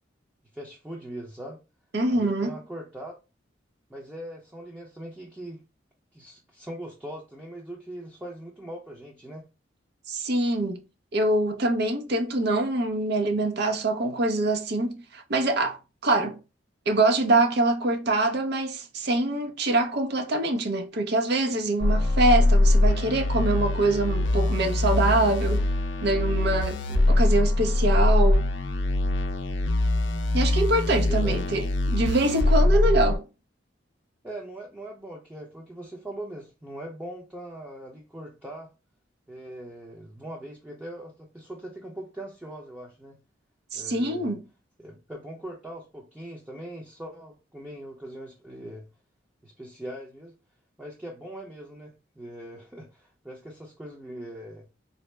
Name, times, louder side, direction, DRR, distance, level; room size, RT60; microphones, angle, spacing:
voice 1, 0.5-1.6 2.1-3.1 3.9-5.6 6.1-9.4 26.8-27.2 30.8-31.4 34.2-38.7 39.3-43.2 43.7-44.4 44.8-48.9 49.4-50.4 50.8-54.7, right 1 dB, 10° right, 0.6 m, -41 dB
voice 2, 1.9-2.5 10.1-10.8 11.1-15.8 16.0-16.4 16.9-25.7 26.0-28.4 30.3-33.3 43.7-44.4, right 2 dB, 60° right, 0.6 m, -24 dB
sound 1, 21.8-33.2, left 2 dB, 75° left, 0.5 m, -23 dB
4.1 x 2.0 x 3.2 m
head